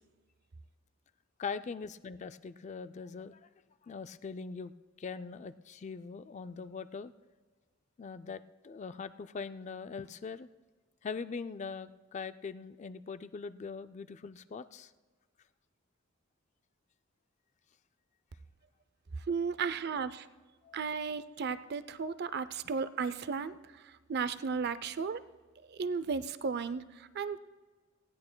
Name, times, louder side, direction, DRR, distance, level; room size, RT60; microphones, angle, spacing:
voice 1, 1.4-3.5 3.8-4.7 5.0-7.1 8.0-10.5 11.0-14.9 20.6-20.8, left 5 dB, 35° left, 12 dB, 0.4 m, -42 dB
voice 2, 19.3-20.3 20.7-25.2 25.7-27.4, right 5 dB, 55° right, 14 dB, 0.5 m, -35 dB
19.0 x 16.0 x 2.2 m, 1.4 s
head